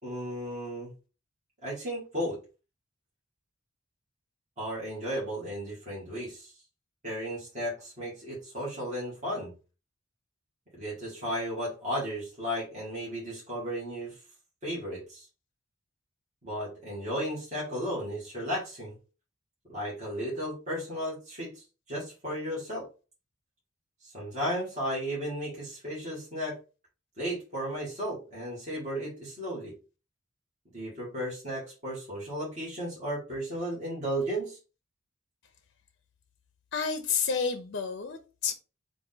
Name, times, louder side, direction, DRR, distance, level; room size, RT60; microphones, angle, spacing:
voice 1, 0.0-0.9 1.6-2.4 4.6-6.5 7.0-9.5 10.7-14.2 14.6-15.3 16.4-18.9 19.7-21.5 21.9-22.9 24.0-26.5 27.2-29.7 30.7-34.6, equal, 35° right, 1.7 m, -34 dB
voice 2, 36.7-38.5, left 6 dB, 55° left, 0.5 m, -30 dB
3.8 x 2.5 x 3.8 m
head